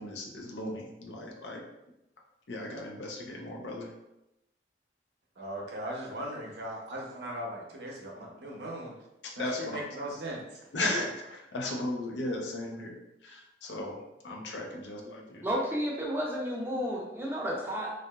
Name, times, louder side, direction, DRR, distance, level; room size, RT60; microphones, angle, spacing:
voice 1, 0.0-1.6 2.5-3.9 9.2-9.8 10.7-11.1 11.5-12.9 13.2-15.5, left 2 dB, 80° left, 1 dB, 0.5 m, -36 dB
voice 2, 5.4-8.9 9.4-10.4 10.8-11.1, right 1 dB, 70° right, -1 dB, 0.6 m, -38 dB
voice 3, 15.4-17.9, equal, 15° right, -3 dB, 0.5 m, -32 dB
2.7 x 2.4 x 2.2 m, 0.90 s
head